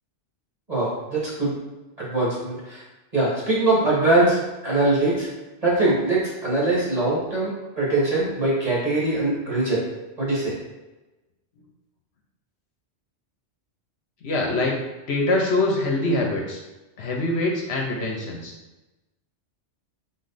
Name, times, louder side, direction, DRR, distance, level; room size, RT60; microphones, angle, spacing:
voice 1, 0.7-1.5 2.0-2.8 3.1-5.3 5.6-9.8 10.2-10.5, right 2 dB, 35° right, -6 dB, 1.7 m, -22 dB
voice 2, 14.2-14.8 15.1-16.6 17.0-18.5, left 2 dB, 65° left, 0 dB, 1.0 m, -24 dB
4.1 x 3.2 x 4.0 m, 1.1 s
omnidirectional pair, 1.2 m